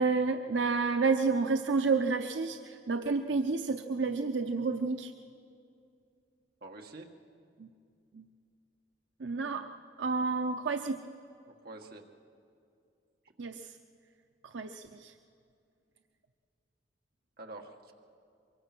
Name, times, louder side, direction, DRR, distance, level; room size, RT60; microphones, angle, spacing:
voice 1, 0.0-5.1 7.6-7.7 8.1-8.3 9.2-9.7 10.0-11.0 13.4-13.7 14.4-15.1, right 4 dB, 90° right, 6 dB, 0.7 m, -30 dB
voice 2, 6.6-7.1 11.5-12.0 17.4-17.9, right 2 dB, 55° right, 2 dB, 1.7 m, -47 dB
23.5 x 23.5 x 6.1 m, 2.4 s
head